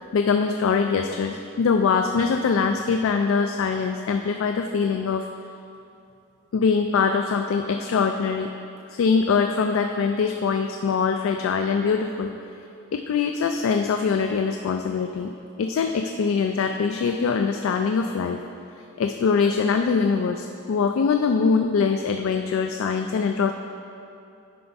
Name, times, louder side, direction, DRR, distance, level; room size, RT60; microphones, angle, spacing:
voice 1, 0.1-5.3 6.5-8.5 8.9-12.3 12.9-15.3 15.6-18.4 19.0-23.5, left 5 dB, 75° left, 5 dB, 0.3 m, -23 dB
9.4 x 3.4 x 5.2 m, 2.6 s
head